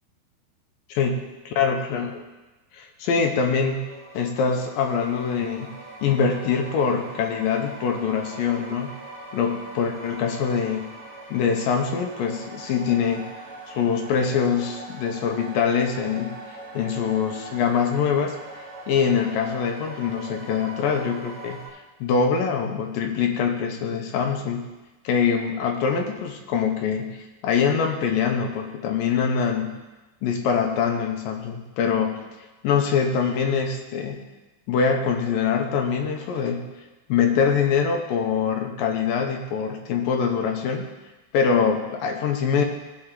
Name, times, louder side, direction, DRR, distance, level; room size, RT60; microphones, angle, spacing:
voice 1, 1.6-2.3 2.7-3.8 4.1-8.9 9.3-11.0 11.3-13.3 13.7-16.4 16.7-18.4 18.9-21.6 22.0-24.6 25.0-29.7 30.2-32.3 32.6-34.3 34.7-36.7 37.1-40.9 41.3-42.6, left 6 dB, 75° left, 3 dB, 2.4 m, -24 dB
sound 1, 3.5-21.7, right 2 dB, 45° right, 1.4 m, -41 dB
15.5 x 5.4 x 3.8 m, 1.1 s
omnidirectional pair, 4.5 m